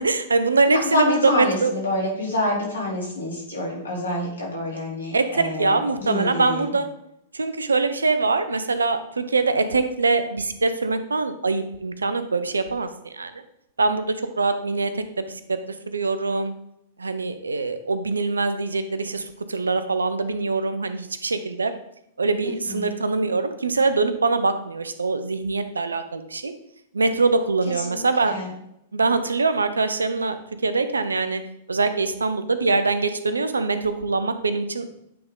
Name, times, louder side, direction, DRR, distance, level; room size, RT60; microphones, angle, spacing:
voice 1, 0.0-1.7 5.1-6.9 7.3-13.3 13.8-15.6 15.9-16.5 17.0-21.7 22.2-26.5 26.9-28.3 28.9-30.4 30.6-31.4 31.7-34.9, right 3 dB, 90° right, 10 dB, 0.6 m, -23 dB
voice 2, 0.7-6.7 22.4-22.9 27.8-28.5, left 2 dB, 85° left, -3 dB, 2.7 m, -27 dB
8.7 x 3.8 x 3.8 m, 0.78 s
hypercardioid pair, 105°, 0 cm